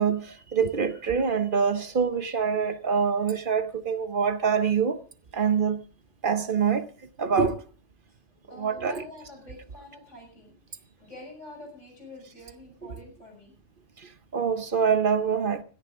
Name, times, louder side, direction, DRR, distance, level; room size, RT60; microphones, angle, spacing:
voice 1, 0.0-5.0 5.3-5.8 6.2-6.9 7.2-7.6 8.5-9.0 14.0-15.6, right 6 dB, 50° right, 1.0 m, -25 dB
voice 2, 8.5-10.5 11.0-13.5, left 2 dB, 85° left, 7.1 m, -46 dB
17.0 x 14.0 x 3.7 m
omnidirectional pair, 1.2 m